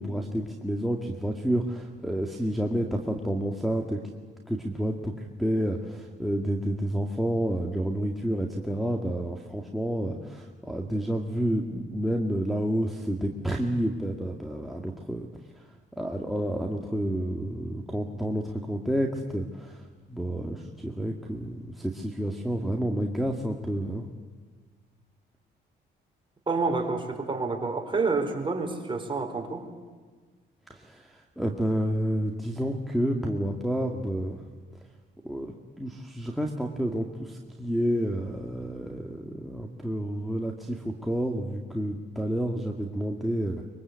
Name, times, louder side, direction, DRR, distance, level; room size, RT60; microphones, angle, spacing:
voice 1, 0.0-4.0 4.5-15.3 16.0-19.8 20.1-24.0 30.7-31.1 31.4-34.4 35.2-43.6, equal, ahead, 0 dB, 2.1 m, -29 dB
voice 2, 26.5-29.7, right 4 dB, 25° right, 3 dB, 4.6 m, -28 dB
24.5 x 23.0 x 8.4 m, 1.5 s
cardioid pair, 90°, 20 cm